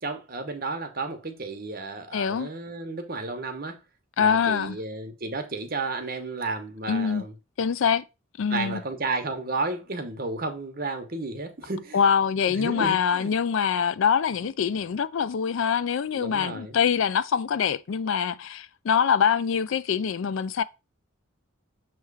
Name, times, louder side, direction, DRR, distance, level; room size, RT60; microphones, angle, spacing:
voice 1, 0.0-3.8 4.2-7.3 8.5-12.0 12.5-13.3 14.4-14.5 16.1-16.8, right 3 dB, 40° right, 1.0 m, -32 dB
voice 2, 2.1-2.5 4.2-4.8 6.9-7.2 7.6-8.0 8.4-8.8 11.9-20.6, left 7 dB, 65° left, 0.4 m, -24 dB
6.7 x 3.1 x 4.7 m
head